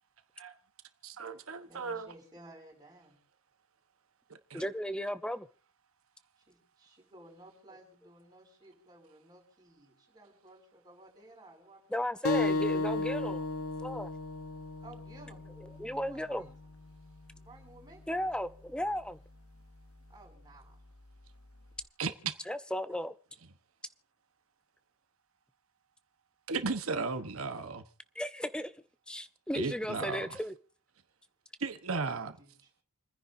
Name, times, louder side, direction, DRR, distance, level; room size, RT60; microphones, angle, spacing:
voice 1, 1.0-2.1 4.5-4.6 22.0-22.3 26.5-27.8 29.5-30.4 31.6-32.4, right 4 dB, 70° right, 1.1 m, -35 dB
voice 2, 1.6-3.2 6.4-12.8 14.8-15.4 15.8-16.5 17.4-18.0 20.1-20.8 31.9-32.7, right 2 dB, 20° right, 5.7 m, -56 dB
voice 3, 4.5-5.5 11.9-13.5 13.8-14.1 15.8-16.5 18.1-19.2 22.5-23.1 28.2-28.7 29.1-30.5, equal, 5° left, 0.7 m, -35 dB
sound 1, 12.2-17.4, left 2 dB, 75° left, 1.0 m, -34 dB
29.0 x 10.0 x 2.7 m
head